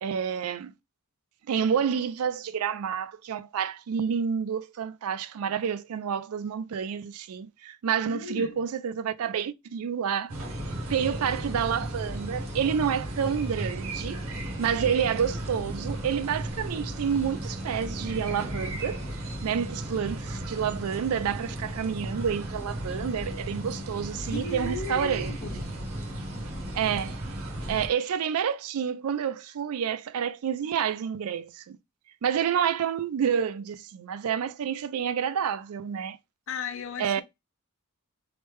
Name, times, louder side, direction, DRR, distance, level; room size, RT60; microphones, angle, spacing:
voice 1, 0.0-0.7 1.5-14.2 14.6-19.0 19.4-25.3 26.7-27.3 27.7-31.8 32.2-36.2 37.0-37.2, right 7 dB, 90° right, 0.4 m, -29 dB
voice 2, 8.1-8.6 24.3-25.7 36.5-37.2, left 3 dB, 65° left, 0.5 m, -36 dB
sound 1, 10.3-27.9, right 1 dB, 70° right, 0.9 m, -35 dB
3.2 x 2.1 x 3.1 m
head